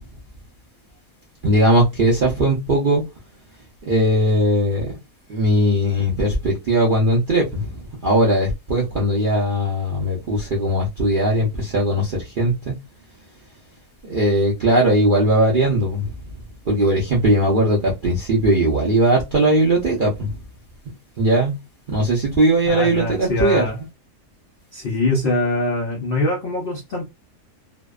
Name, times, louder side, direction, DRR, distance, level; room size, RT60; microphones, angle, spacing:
voice 1, 1.4-3.0 3.9-4.9 5.3-12.7 14.0-16.1 16.7-20.4 21.2-21.6 21.9-23.6, right 1 dB, 65° right, 0.5 m, -19 dB
voice 2, 22.6-23.8 24.7-27.0, left 2 dB, 70° left, 0.5 m, -23 dB
2.7 x 2.1 x 2.3 m
omnidirectional pair, 1.7 m